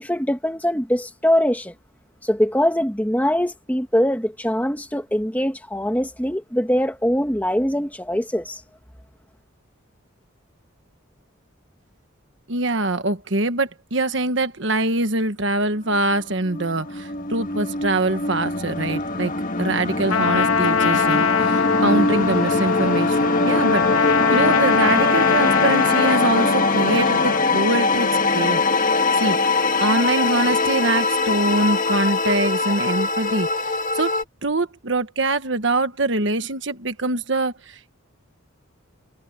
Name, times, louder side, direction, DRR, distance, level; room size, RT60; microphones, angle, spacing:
voice 1, 0.0-1.7 2.2-8.6, equal, 10° left, 1.8 m, -22 dB
voice 2, 12.5-19.3 19.6-28.6 29.1-29.4 29.8-34.2 34.4-37.9, right 2 dB, 60° right, 1.4 m, -24 dB
sound 1, 15.9-34.2, left 3 dB, 40° left, 1.8 m, -22 dB
Trumpet, 20.1-27.4, left 6 dB, 90° left, 0.8 m, -22 dB
head